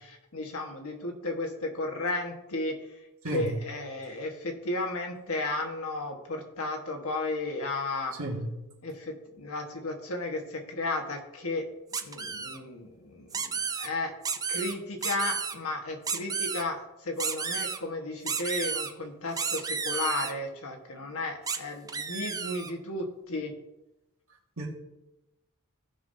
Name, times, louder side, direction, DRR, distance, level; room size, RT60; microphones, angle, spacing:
voice 1, 0.0-2.8 3.3-8.1 8.8-11.7 12.0-14.1 14.5-23.5, left 2 dB, 75° left, 3 dB, 1.4 m, -34 dB
voice 2, 3.2-3.6 8.2-8.5 24.6-24.7, right 1 dB, 70° right, -1 dB, 1.9 m, -31 dB
sound 1, 11.9-12.6 13.3-13.9 14.2-14.7 15.0-15.5 16.0-16.6 17.2-17.8 18.3-18.9 19.4-20.3 21.5-21.6 21.9-22.7, right 6 dB, 15° right, 0.4 m, -32 dB
16.0 x 5.5 x 2.7 m, 0.97 s
head